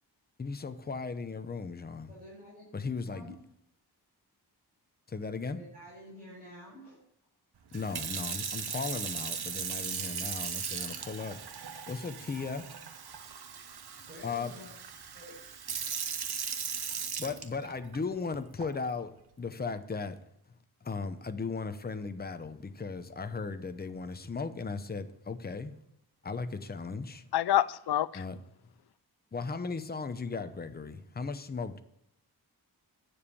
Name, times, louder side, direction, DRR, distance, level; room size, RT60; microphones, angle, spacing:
voice 1, 0.4-2.1 2.7-3.3 5.1-5.6 7.7-11.4 11.9-12.7 14.2-14.6 17.2-20.2 20.8-25.8 26.2-27.2 28.1-28.4 29.3-31.8, left 4 dB, 25° left, 0.7 m, -37 dB
voice 2, 2.1-2.7 3.1-3.4 5.5-7.0 14.1-14.7 15.1-15.4 16.6-16.8, equal, 25° right, 5.3 m, -50 dB
Sink (filling or washing) / Fill (with liquid), 7.7-18.0 18.6-18.9, right 7 dB, 75° right, 1.1 m, -38 dB
voice 3, 27.3-28.2, left 12 dB, 80° left, 0.5 m, -27 dB
9.9 x 7.2 x 6.9 m
wide cardioid pair, 130°, 39 cm